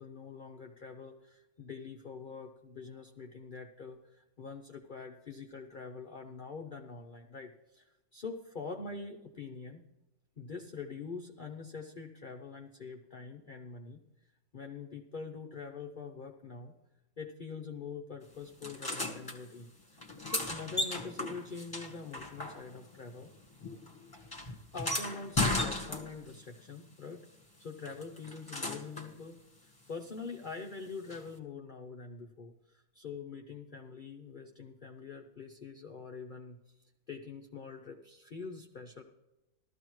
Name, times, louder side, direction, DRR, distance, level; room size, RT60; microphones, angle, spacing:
voice 1, 0.0-9.9 10.4-14.0 14.5-16.7 17.2-23.3 24.4-27.3 27.6-36.6 37.1-39.0, left 4 dB, 75° left, 2 dB, 0.4 m, -45 dB
sound 1, 18.6-19.4 20.0-22.9 23.2-26.4 27.8-29.1 31.1-31.2, left 2 dB, 15° left, 1.1 m, -36 dB
14.5 x 13.0 x 3.1 m, 0.99 s
omnidirectional pair, 1.8 m